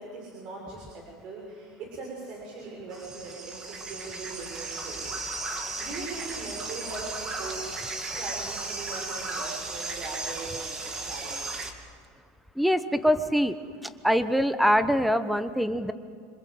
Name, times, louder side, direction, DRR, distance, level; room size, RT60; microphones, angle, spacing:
voice 1, 0.0-5.0 5.4-7.7 8.2-11.5, right 3 dB, 45° right, -1 dB, 6.1 m, -40 dB
sound 1, 2.9-11.7, right 3 dB, 25° right, 2.7 m, -35 dB
voice 2, 12.6-13.6 14.0-15.9, equal, ahead, 11 dB, 1.1 m, -23 dB
27.5 x 26.0 x 7.9 m, 2.1 s
supercardioid pair, 145°, 2 cm